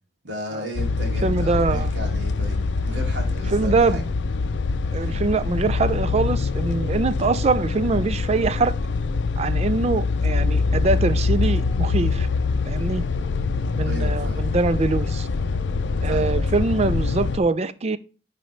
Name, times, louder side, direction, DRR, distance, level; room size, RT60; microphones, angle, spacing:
voice 1, 0.2-4.0 5.0-5.2 13.8-14.6 16.0-16.4, equal, 85° right, 2.4 m, -34 dB
sound 1, 0.8-17.4, left 4 dB, 80° left, 0.5 m, -24 dB
voice 2, 1.2-1.9 3.5-4.1 4.9-8.7 9.4-12.3 12.7-13.0 13.8-15.3 16.0-18.0, right 3 dB, 35° right, 0.4 m, -23 dB
10.0 x 4.1 x 3.3 m
head